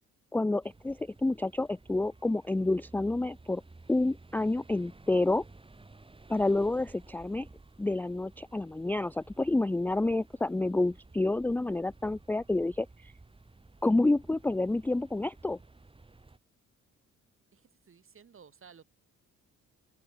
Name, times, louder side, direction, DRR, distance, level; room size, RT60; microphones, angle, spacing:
voice 1, 0.3-3.6 3.9-5.4 6.3-7.5 7.8-13.1 13.8-15.6, left 2 dB, 5° left, 0.4 m, -29 dB
sound 1, 0.6-16.4, right 2 dB, 15° right, 4.0 m, -55 dB
voice 2, 17.5-18.8, right 6 dB, 45° right, 5.9 m, -55 dB
open air
cardioid pair, 90°, 30 cm